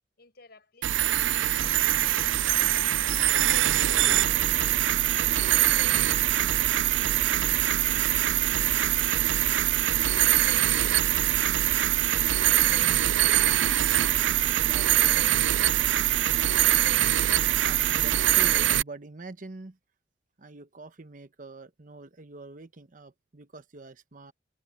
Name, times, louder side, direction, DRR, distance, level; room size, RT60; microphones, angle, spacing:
voice 1, 0.2-3.5 4.0-7.7, left 3 dB, 60° left, 6.8 m, -56 dB
sound 1, 0.8-18.8, right 13 dB, 85° right, 0.4 m, -23 dB
voice 2, 12.7-13.4 14.4-15.4 17.4-19.8 20.4-24.3, right 3 dB, 45° right, 1.0 m, -45 dB
head